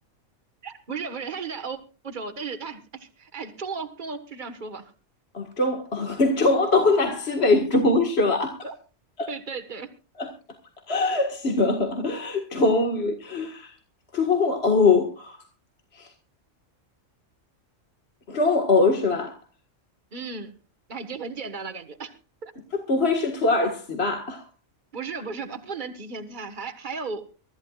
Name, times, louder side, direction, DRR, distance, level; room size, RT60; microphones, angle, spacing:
voice 1, 0.6-4.9 8.6-8.7 9.3-9.9 20.1-20.5 20.9-22.1 22.4-22.5 24.9-27.3, right 4 dB, 40° right, 1.7 m, -35 dB
voice 2, 5.3-8.6 9.2-9.3 10.2-10.3 10.9-13.7 14.1-15.4 16.0-16.1 18.3-19.4 22.7-24.4, left 3 dB, 50° left, 2.1 m, -22 dB
24.5 x 14.5 x 2.5 m
omnidirectional pair, 1.3 m